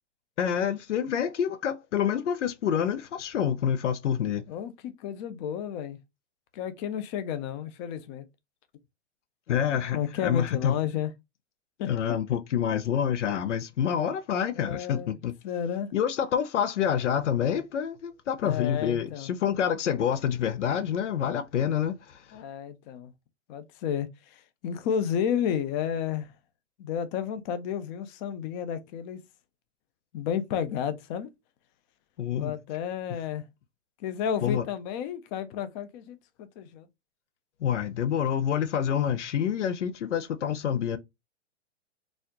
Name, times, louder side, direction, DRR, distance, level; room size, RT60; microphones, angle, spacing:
voice 1, 0.4-4.4 9.5-10.0 10.2-10.8 11.9-15.3 15.9-22.2 32.2-32.5 34.4-34.6 37.6-41.0, left 8 dB, 85° left, 0.7 m, -27 dB
voice 2, 4.5-6.0 6.5-8.3 9.9-11.1 11.8-12.2 14.5-15.2 15.4-15.9 18.4-19.3 22.3-23.1 23.5-26.3 26.8-29.2 30.1-31.3 32.3-33.4 34.0-36.9, left 8 dB, 40° left, 0.7 m, -32 dB
4.1 x 2.4 x 2.7 m
hypercardioid pair, 130°, 35 cm